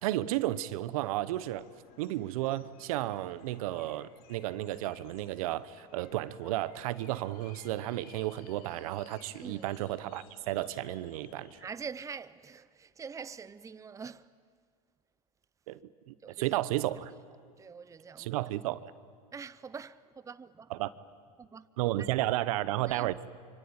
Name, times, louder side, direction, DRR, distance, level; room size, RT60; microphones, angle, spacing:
voice 1, 0.0-1.7 2.0-11.6 15.7-17.1 18.2-18.9 20.7-20.9 21.8-23.2, right 15 dB, 75° right, 1.0 m, -33 dB
sound 1, 1.3-11.7, left 8 dB, 55° left, 2.3 m, -58 dB
voice 2, 11.6-14.3 16.2-16.6 17.6-18.4 19.3-20.7 21.4-21.7 22.0-22.1 22.9-23.3, right 6 dB, 15° right, 0.7 m, -44 dB
25.0 x 24.5 x 8.8 m
hypercardioid pair, 100°, 18 cm